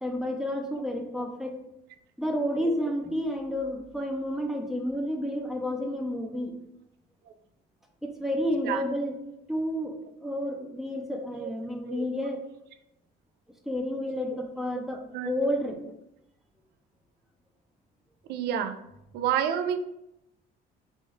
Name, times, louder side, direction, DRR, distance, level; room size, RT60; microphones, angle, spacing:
voice 1, 0.0-1.6 2.2-6.5 8.0-9.2 9.5-12.5 13.7-15.8, equal, ahead, 2 dB, 0.5 m, -30 dB
voice 2, 18.3-18.8 19.1-19.8, right 9 dB, 75° right, 8 dB, 0.4 m, -29 dB
3.5 x 2.4 x 3.7 m, 0.83 s
cardioid pair, 110°, 17 cm